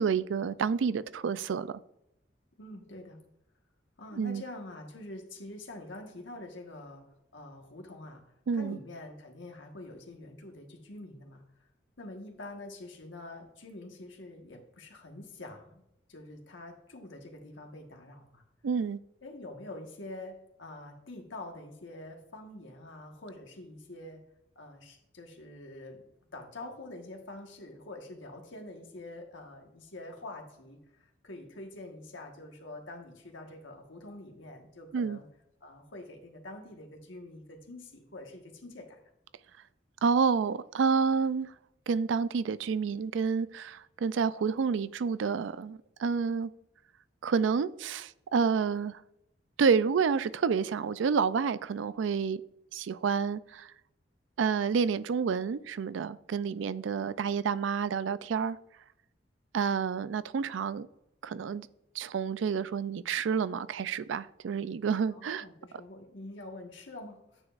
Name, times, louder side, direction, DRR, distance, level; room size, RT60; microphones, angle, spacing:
voice 1, 0.0-1.8 4.1-4.4 8.5-8.8 18.6-19.0 34.9-35.2 40.0-41.5 41.9-46.5 47.2-49.0 49.6-52.4 52.7-53.7 54.4-58.6 59.5-60.9 61.2-61.7 61.9-65.4, right 6 dB, 85° right, 0.4 m, -29 dB
voice 2, 2.6-3.2 4.0-7.0 7.3-11.4 12.0-15.8 16.1-18.4 19.2-24.2 24.5-35.3 35.6-39.0 65.1-67.4, left 2 dB, 85° left, 1.4 m, -46 dB
9.6 x 7.0 x 2.4 m
head